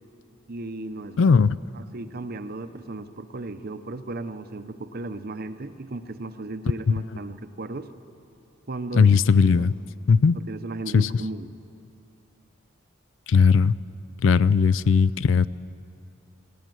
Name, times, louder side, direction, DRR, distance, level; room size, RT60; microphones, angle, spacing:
voice 1, 0.5-1.3 1.7-7.9 8.7-9.1 9.5-9.7 10.3-11.5, right 2 dB, 45° right, 11 dB, 0.8 m, -35 dB
voice 2, 1.2-1.6 8.9-9.7 10.1-10.4 10.9-11.1 13.3-13.7 14.2-15.5, left 5 dB, 60° left, 17 dB, 0.4 m, -18 dB
18.0 x 16.5 x 9.2 m, 2.6 s
head